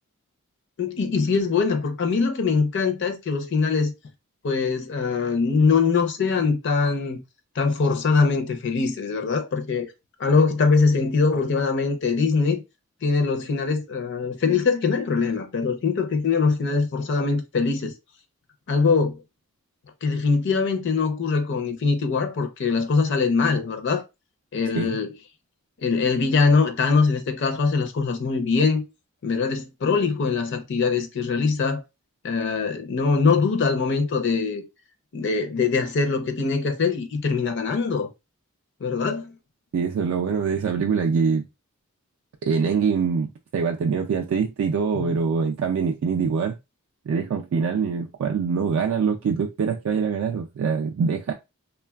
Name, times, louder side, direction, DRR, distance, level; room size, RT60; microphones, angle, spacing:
voice 1, 0.8-3.9 4.4-7.2 7.6-9.9 10.2-12.6 13.0-17.9 18.7-19.2 20.0-24.0 24.5-25.1 25.8-28.8 29.2-31.8 32.2-34.6 35.1-38.1 38.8-39.3 45.0-45.2, left 4 dB, 55° left, 0.5 m, -22 dB
voice 2, 39.7-41.5 42.4-46.6 47.1-51.3, right 5 dB, 65° right, 0.3 m, -24 dB
3.2 x 2.2 x 2.2 m
head